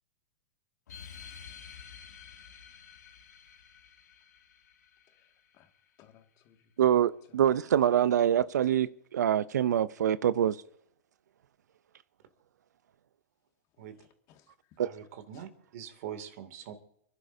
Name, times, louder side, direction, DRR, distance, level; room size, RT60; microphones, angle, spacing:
sound 1, 0.9-5.9, left 7 dB, 85° left, 2.1 m, -50 dB
voice 1, 5.1-5.7 6.0-6.7 13.8-14.8 15.3-15.4, left 10 dB, 40° left, 1.9 m, -63 dB
voice 2, 6.8-10.6 14.8-14.9, right 10 dB, 85° right, 0.5 m, -25 dB
voice 3, 14.8-16.7, right 9 dB, 60° right, 2.4 m, -43 dB
30.0 x 11.5 x 2.7 m
hypercardioid pair, 125°, 9 cm